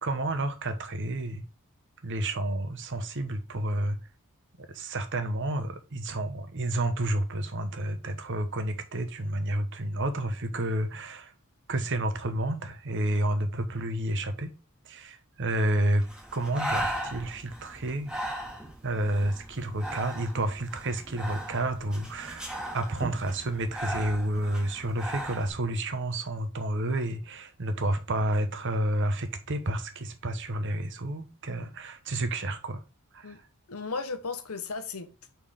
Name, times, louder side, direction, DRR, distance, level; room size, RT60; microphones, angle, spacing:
voice 1, 0.0-1.4 2.0-4.0 4.6-11.3 11.7-14.5 14.8-16.1 16.3-18.1 18.8-22.5 22.7-32.8 33.1-33.4, right 1 dB, 55° right, 1.0 m, -30 dB
Breathing, 16.0-25.5, right 1 dB, 5° right, 1.7 m, -37 dB
voice 2, 33.7-35.3, left 4 dB, 75° left, 1.0 m, -35 dB
5.4 x 4.5 x 5.0 m
head